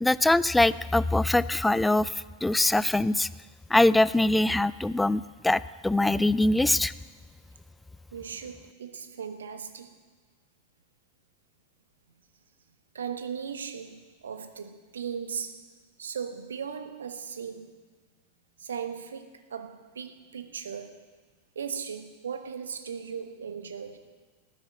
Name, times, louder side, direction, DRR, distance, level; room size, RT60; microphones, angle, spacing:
voice 1, 0.0-2.1 2.4-3.3 3.7-6.9, left 2 dB, 5° left, 18 dB, 0.3 m, -23 dB
voice 2, 8.1-9.9 12.9-15.7 16.0-17.8 18.6-21.0 21.5-24.0, right 7 dB, 70° right, 9 dB, 1.1 m, -37 dB
13.5 x 9.9 x 8.2 m, 1.4 s
figure-of-eight pair, 90°, 0 cm